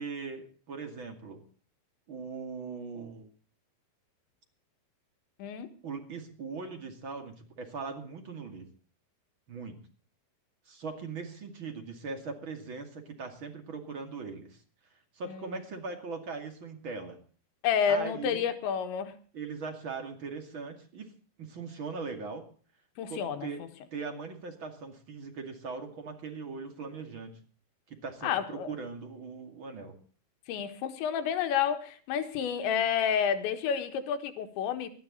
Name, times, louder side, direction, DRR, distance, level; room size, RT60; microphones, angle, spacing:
voice 1, 0.0-1.4 2.1-3.3 5.8-8.7 9.5-9.8 10.7-14.6 15.1-17.2 17.9-18.4 19.3-21.1 21.4-22.5 23.1-23.6 23.9-27.4 27.9-30.0, right 4 dB, 35° right, 5 dB, 2.3 m, -40 dB
voice 2, 5.4-5.7 15.3-15.6 17.6-19.2 23.0-23.5 28.2-28.7 30.5-34.9, left 8 dB, 80° left, 7 dB, 3.8 m, -30 dB
20.0 x 13.0 x 3.9 m, 0.41 s
omnidirectional pair, 5.1 m